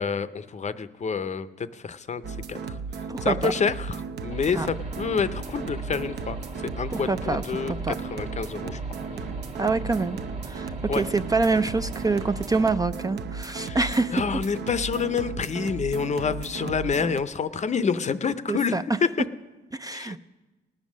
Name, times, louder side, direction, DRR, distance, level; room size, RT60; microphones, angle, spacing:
voice 1, 0.0-2.8 3.2-8.8 10.9-11.1 13.6-18.7 19.0-19.1 19.9-20.2, left 6 dB, 35° left, 13 dB, 0.6 m, -28 dB
sound 1, 2.2-17.2, right 5 dB, 60° right, 0.7 m, -35 dB
voice 2, 3.1-3.5 4.5-4.7 6.9-7.9 9.6-10.2 10.4-14.2 18.5-18.8 19.7-20.2, right 3 dB, 20° right, 10 dB, 0.4 m, -26 dB
Aircraft / Engine, 4.3-12.8, right 3 dB, 35° right, 1.4 m, -40 dB
18.5 x 7.3 x 6.2 m, 1.2 s
cardioid pair, 90°, 20 cm